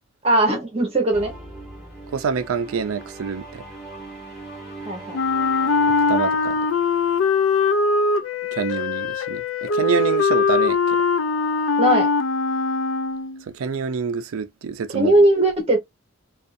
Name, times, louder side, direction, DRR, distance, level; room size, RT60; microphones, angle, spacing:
voice 1, 0.2-1.3 4.9-5.2 11.8-12.1 14.9-15.8, right 1 dB, 30° right, 0.8 m, -18 dB
sound 1, 1.1-7.5, right 2 dB, ahead, 1.2 m, -40 dB
voice 2, 2.1-3.6 6.1-6.6 8.5-11.0 13.5-15.1, right 6 dB, 90° right, 0.4 m, -26 dB
Wind instrument woodwind instrument, 5.1-13.4, left 4 dB, 75° left, 0.4 m, -21 dB
2.5 x 2.3 x 2.4 m
head